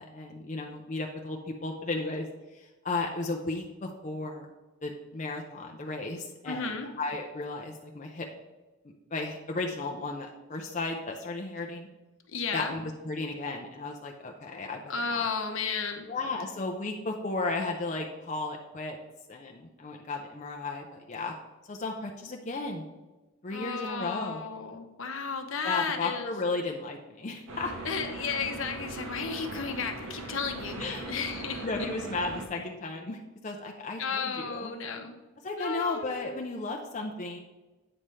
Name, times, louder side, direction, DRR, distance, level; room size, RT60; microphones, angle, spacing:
voice 1, 0.0-4.5 4.8-8.3 8.8-11.9 12.5-15.3 16.1-19.0 19.3-21.3 21.7-22.8 23.4-24.4 25.6-27.7 30.8-31.1 31.6-34.7 35.4-37.4, left 3 dB, 35° left, 1 dB, 0.5 m, -34 dB
voice 2, 6.5-6.9 12.3-12.7 14.9-16.1 23.5-26.3 27.8-31.9 34.0-35.2 35.6-36.4, left 5 dB, 65° left, 5 dB, 0.8 m, -33 dB
sound 1, 27.5-32.5, right 2 dB, 75° right, 1.0 m, -40 dB
8.7 x 3.2 x 5.5 m, 1.2 s
head